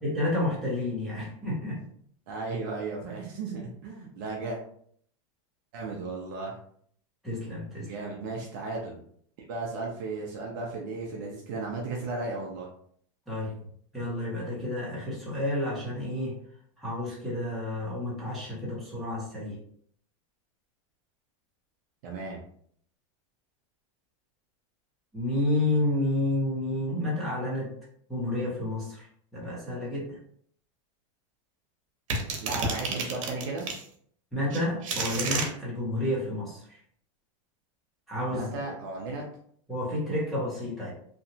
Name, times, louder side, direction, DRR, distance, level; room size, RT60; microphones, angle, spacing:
voice 1, 0.0-1.8 7.2-7.9 13.3-13.5 13.9-16.3 16.8-19.5 25.1-27.7 28.1-29.1 29.3-30.2 34.3-36.6 38.1-38.5 39.7-40.9, left 1 dB, ahead, -8 dB, 0.7 m, -30 dB
voice 2, 2.3-4.6 5.7-6.6 7.8-9.0 9.5-12.7 22.0-22.4 32.4-33.7 38.3-39.2, right 3 dB, 35° right, -1 dB, 0.4 m, -35 dB
sound 1, 32.1-33.8 34.5-35.5, right 3 dB, 75° right, 0.8 m, -30 dB
2.8 x 2.2 x 2.6 m, 0.62 s
supercardioid pair, 180°, 17 cm